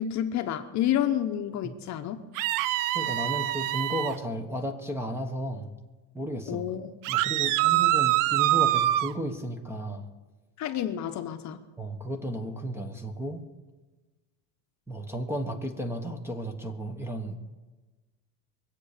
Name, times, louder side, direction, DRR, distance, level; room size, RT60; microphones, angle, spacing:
voice 1, 0.0-2.2 6.5-6.9 10.6-11.6, left 10 dB, 40° left, 7 dB, 1.0 m, -29 dB
sound 1, 2.4-4.2 7.0-9.1, right 14 dB, 50° right, 0.5 m, -25 dB
voice 2, 2.9-5.7 6.1-6.6 7.1-10.1 11.8-13.4 14.9-17.4, equal, 5° right, 6 dB, 1.0 m, -34 dB
23.0 x 8.5 x 6.7 m, 1.2 s
cardioid pair, 150°, 44 cm